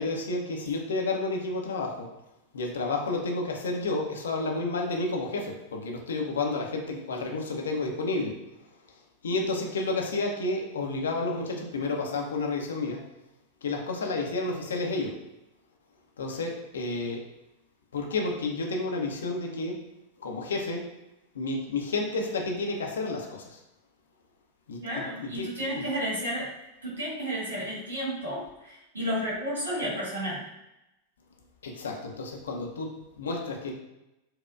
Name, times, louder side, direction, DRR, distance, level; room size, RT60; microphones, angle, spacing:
voice 1, 0.0-2.1 2.5-8.4 9.2-13.1 13.6-15.2 16.2-17.3 17.9-19.8 20.2-20.8 21.3-23.6 24.7-25.5 25.7-25.8 31.6-33.7, left 3 dB, 65° left, 1 dB, 0.5 m, -31 dB
voice 2, 24.8-26.5 26.8-30.4, equal, 70° right, -6 dB, 1.3 m, -32 dB
4.1 x 2.1 x 2.3 m, 0.92 s
figure-of-eight pair, 90°, 0 cm